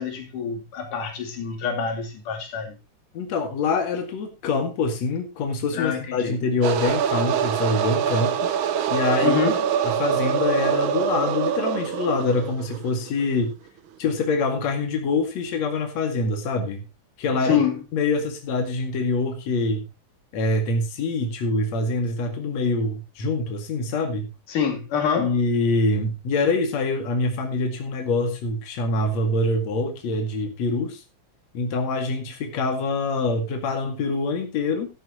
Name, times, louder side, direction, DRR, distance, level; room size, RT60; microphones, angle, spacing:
voice 1, 0.0-2.7 5.7-6.4 9.2-9.6 17.4-17.8 24.5-25.3, left 7 dB, 85° left, 4.2 m, -26 dB
voice 2, 3.1-8.5 8.9-9.4 9.8-13.5 14.0-16.8 17.2-17.6 17.9-19.8 20.3-24.3 25.2-31.0 31.5-34.9, left 3 dB, 60° left, 3.2 m, -25 dB
sound 1, 6.6-13.3, right 9 dB, 70° right, 1.2 m, -24 dB
13.0 x 12.0 x 2.9 m
omnidirectional pair, 3.5 m